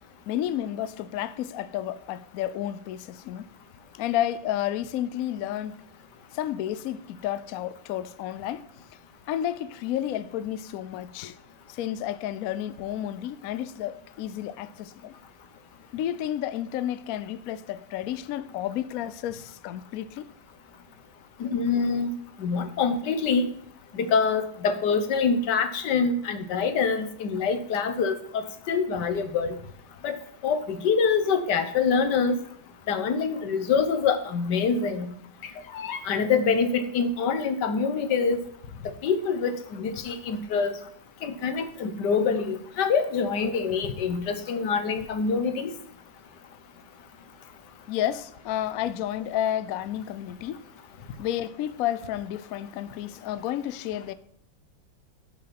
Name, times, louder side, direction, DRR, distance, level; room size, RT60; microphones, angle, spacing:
voice 1, 0.3-3.5 3.9-5.8 6.3-8.7 9.3-11.4 11.7-15.1 15.9-20.3 47.9-50.6 51.2-54.1, left 11 dB, 80° left, 0.7 m, -31 dB
voice 2, 21.4-22.1 22.4-23.5 23.9-29.6 30.0-30.2 30.4-32.4 32.9-35.1 35.7-38.4 38.8-40.8 41.2-45.7, left 5 dB, 65° left, 1.5 m, -25 dB
10.5 x 6.7 x 5.8 m
omnidirectional pair, 2.1 m